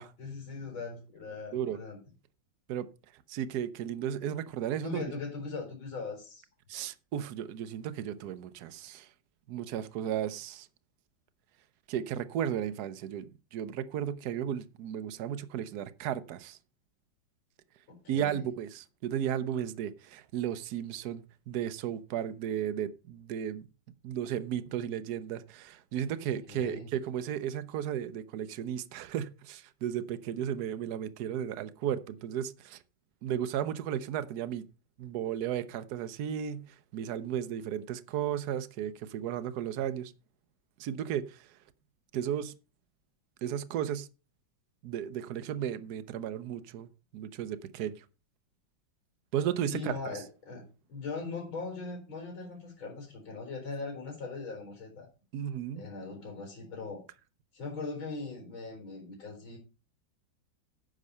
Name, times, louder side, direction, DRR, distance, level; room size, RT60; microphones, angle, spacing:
voice 1, 0.2-2.0 4.8-6.5 17.9-18.5 26.5-26.9 49.7-55.1 55.8-57.0 57.5-59.6, left 4 dB, 85° left, 4.9 m, -40 dB
voice 2, 3.3-5.0 6.7-9.1 9.5-10.7 11.9-16.6 18.1-23.7 24.0-32.8 33.2-34.6 35.0-40.1 40.8-41.5 42.1-42.5 43.4-44.1 44.8-46.9 47.1-48.0 49.3-50.2 55.3-55.8, right 10 dB, 60° right, 1.2 m, -34 dB
10.0 x 6.7 x 5.4 m
omnidirectional pair, 2.1 m